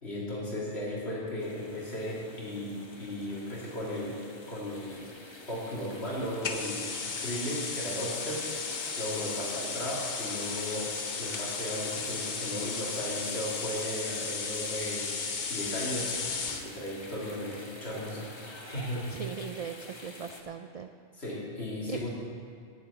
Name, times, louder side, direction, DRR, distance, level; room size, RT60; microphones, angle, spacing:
voice 1, 0.0-4.2 4.5-5.1 5.5-10.9 11.2-15.1 15.5-16.2 16.6-19.1 21.2-22.1, left 1 dB, 65° left, -5 dB, 2.4 m, -36 dB
sound 1, 1.4-20.4, left 1 dB, 25° left, 1.1 m, -48 dB
sound 2, 6.4-16.7, left 5 dB, 45° left, 0.9 m, -35 dB
voice 2, 19.1-20.9 21.9-22.1, right 6 dB, 60° right, 7 dB, 0.4 m, -39 dB
9.6 x 8.4 x 8.1 m, 2.4 s
omnidirectional pair, 1.2 m